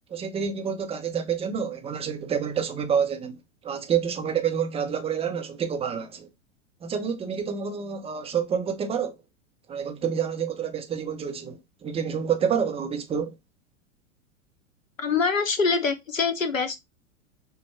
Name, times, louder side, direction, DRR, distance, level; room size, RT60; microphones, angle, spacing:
voice 1, 0.1-3.4 3.6-6.3 6.8-9.1 9.7-13.3, right 7 dB, 15° right, 0.7 m, -28 dB
voice 2, 15.0-16.8, left 5 dB, 90° left, 0.7 m, -24 dB
5.5 x 2.2 x 3.1 m
figure-of-eight pair, 95°, 38 cm